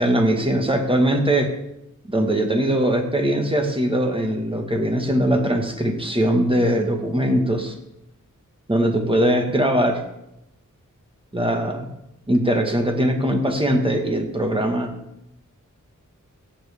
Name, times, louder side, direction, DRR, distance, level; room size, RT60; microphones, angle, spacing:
voice 1, 0.0-1.5 2.1-7.7 8.7-10.0 11.3-11.9 12.3-14.9, right 1 dB, 15° right, 3 dB, 1.6 m, -21 dB
17.5 x 7.3 x 3.6 m, 0.85 s
wide cardioid pair, 75°, 31 cm